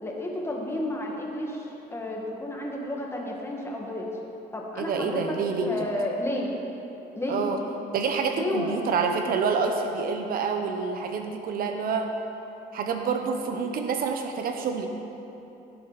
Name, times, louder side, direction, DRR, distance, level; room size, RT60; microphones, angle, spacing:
voice 1, 0.0-4.1 4.5-6.5 7.1-7.4 8.3-8.8, left 1 dB, 15° left, -1 dB, 1.8 m, -32 dB
voice 2, 4.8-5.7 7.3-7.6 7.9-12.1 12.7-14.9, right 5 dB, 60° right, 5 dB, 0.9 m, -27 dB
16.5 x 7.8 x 4.1 m, 3.0 s
cardioid pair, 110°, 17 cm